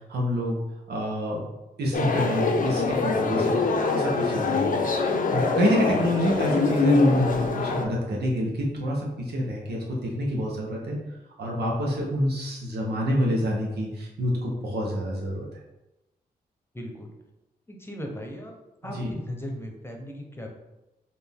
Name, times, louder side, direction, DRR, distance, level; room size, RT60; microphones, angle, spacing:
voice 1, 0.1-0.6 0.9-1.5 1.8-4.8 5.3-11.0 11.4-15.5 18.9-19.1, equal, 85° right, -2 dB, 1.0 m, -27 dB
sound 1, 1.9-7.8, left 3 dB, 55° left, 0.6 m, -24 dB
voice 2, 16.7-17.1 17.7-18.5 18.8-20.5, equal, 15° left, 1 dB, 0.9 m, -37 dB
4.2 x 2.6 x 3.6 m, 0.99 s
cardioid pair, 55°, 16 cm